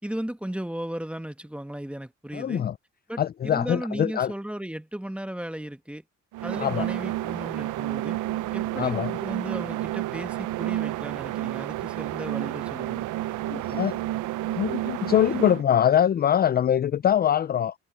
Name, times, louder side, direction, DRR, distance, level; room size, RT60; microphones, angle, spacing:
voice 1, 0.0-2.6 3.1-6.0 6.4-8.2 8.5-13.1, right 1 dB, 5° right, 1.3 m, -35 dB
voice 2, 2.3-2.7 3.2-4.3 6.6-6.9 8.8-9.1 13.5-14.0 14.5-17.7, left 9 dB, 35° left, 0.4 m, -23 dB
sound 1, 6.3-15.6, right 15 dB, 85° right, 0.7 m, -30 dB
cardioid pair, 90°, 30 cm